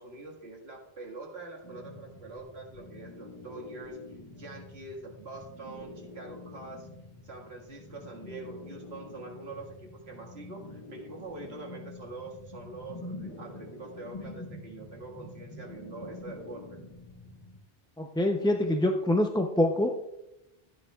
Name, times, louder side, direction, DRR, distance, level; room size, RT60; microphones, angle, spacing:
voice 1, 0.0-4.0 4.3-6.9 7.2-16.8, right 2 dB, 85° right, 0 dB, 2.0 m, -44 dB
sound 1, 1.6-17.6, left 2 dB, 30° left, 1.8 m, -46 dB
voice 2, 18.0-20.0, left 1 dB, 5° left, 3 dB, 0.4 m, -25 dB
14.5 x 9.1 x 2.3 m, 0.90 s
omnidirectional pair, 1.0 m